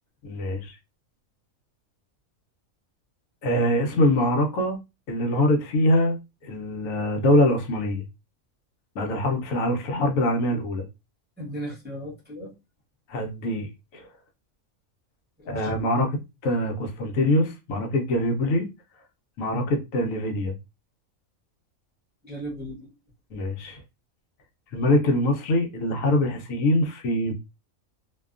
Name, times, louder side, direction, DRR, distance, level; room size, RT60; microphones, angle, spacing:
voice 1, 0.2-0.8 3.4-4.8 5.1-8.0 9.0-10.9 13.1-14.1 15.5-18.7 19.4-20.5 23.3-23.8 24.7-27.3, left 1 dB, 80° left, 1.0 m, -24 dB
voice 2, 11.4-12.5 15.4-15.7 22.2-22.9, right 1 dB, 10° right, 0.7 m, -36 dB
2.6 x 2.2 x 2.4 m
omnidirectional pair, 1.4 m